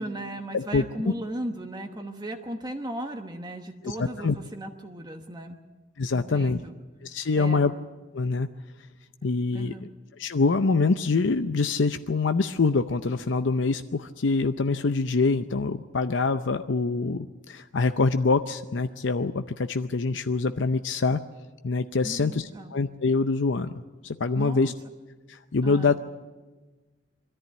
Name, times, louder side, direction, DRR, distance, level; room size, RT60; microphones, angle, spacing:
voice 1, 0.0-5.6 6.1-6.8 7.3-7.7 9.5-9.9 22.0-22.7 24.4-24.7 25.6-26.0, right 1 dB, 25° right, 4 dB, 1.1 m, -36 dB
voice 2, 3.8-4.3 6.0-6.6 7.0-7.7 8.1-8.5 9.2-9.7 10.2-21.2 21.6-23.7 24.0-24.7 25.3-26.0, left 4 dB, 90° left, 9 dB, 0.6 m, -25 dB
22.5 x 14.0 x 9.3 m, 1.3 s
head